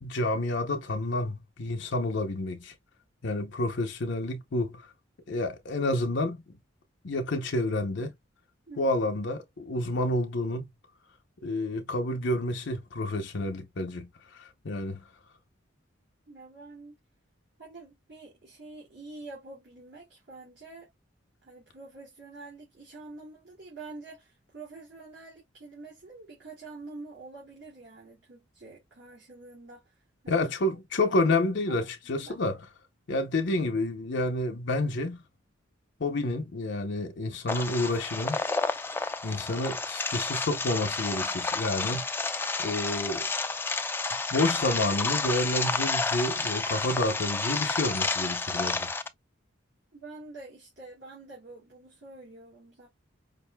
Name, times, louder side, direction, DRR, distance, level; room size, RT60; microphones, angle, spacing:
voice 1, 0.0-2.7 3.2-4.9 5.3-6.4 7.0-8.1 8.8-10.7 11.4-14.1 14.6-15.0 30.3-32.6 33.1-35.2 36.0-38.4 39.2-42.0 42.6-43.3 44.3-48.9, left 2 dB, 65° left, 0.7 m, -29 dB
voice 2, 8.7-9.0 16.3-17.0 17.6-20.9 21.4-30.0 30.2-30.4 31.3-31.4 31.7-32.4 49.9-52.9, right 3 dB, 60° right, 2.4 m, -47 dB
sound 1, 37.5-49.1, left 3 dB, 10° left, 0.3 m, -30 dB
5.1 x 2.6 x 2.2 m
head